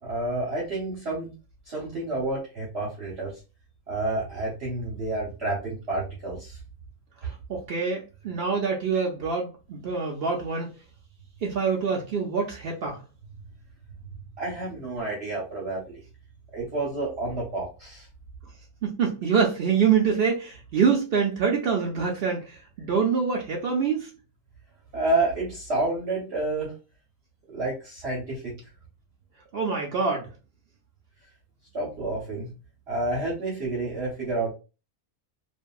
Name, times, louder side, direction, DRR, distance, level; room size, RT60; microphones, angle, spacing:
voice 1, 0.0-1.3 1.7-3.3 3.9-6.6 7.2-7.3 14.4-16.0 16.5-18.1 24.9-26.7 27.5-28.5 31.7-32.5 32.9-34.5, right 2 dB, 50° right, -6 dB, 1.0 m, -29 dB
voice 2, 7.5-10.7 11.4-13.0 18.8-24.1 29.5-30.3, right 6 dB, 75° right, 0 dB, 0.5 m, -25 dB
2.7 x 2.6 x 2.3 m, 0.31 s
omnidirectional pair, 1.5 m